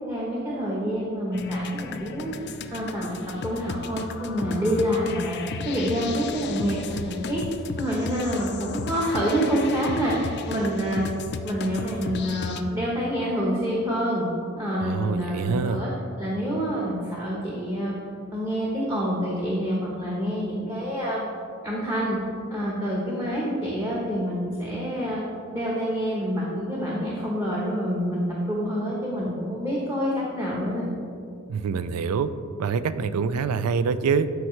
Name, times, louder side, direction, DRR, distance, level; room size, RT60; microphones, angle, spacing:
voice 1, 0.1-3.2 3.4-7.4 7.8-11.0 11.4-14.2 14.6-15.9 16.2-17.9 18.3-21.2 21.6-22.2 22.5-25.2 25.5-30.9, equal, 15° right, -6 dB, 0.9 m, -27 dB
sound 1, 1.3-12.6, left 4 dB, 50° left, 0.4 m, -34 dB
voice 2, 14.8-15.8 31.5-32.3 32.6-34.3, right 6 dB, 90° right, 13 dB, 0.4 m, -25 dB
12.0 x 4.6 x 3.1 m, 2.5 s
head